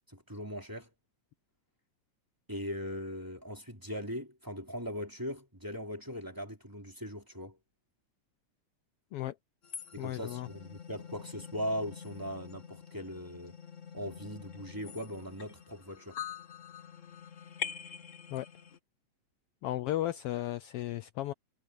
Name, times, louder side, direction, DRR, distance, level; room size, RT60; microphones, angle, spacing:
voice 1, 0.1-0.9 2.5-7.6 9.9-13.6 13.9-16.2, equal, 5° right, 2.6 m, -39 dB
sound 1, 9.6-18.8, left 7 dB, 55° left, 0.8 m, -45 dB
voice 2, 10.0-10.5 18.3-18.5 19.6-21.3, left 14 dB, 80° left, 1.3 m, -34 dB
omnidirectional pair, 3.3 m